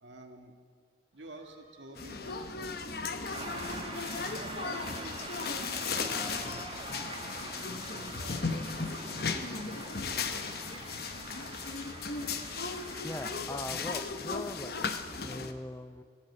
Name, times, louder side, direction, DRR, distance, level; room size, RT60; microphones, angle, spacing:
voice 1, 0.0-0.5 1.1-2.7 3.0-3.8 4.3-10.5, right 1 dB, 85° right, 4 dB, 1.7 m, -51 dB
sound 1, 1.1-10.6, left 1 dB, 30° left, 2.9 m, -54 dB
sound 2, 2.0-15.5, left 4 dB, 55° left, 0.9 m, -36 dB
sound 3, 3.3-13.4, right 3 dB, 30° right, 1.5 m, -44 dB
voice 2, 13.0-14.7 15.2-16.0, left 1 dB, 15° left, 11 dB, 0.5 m, -40 dB
16.0 x 8.8 x 9.7 m, 2.1 s
head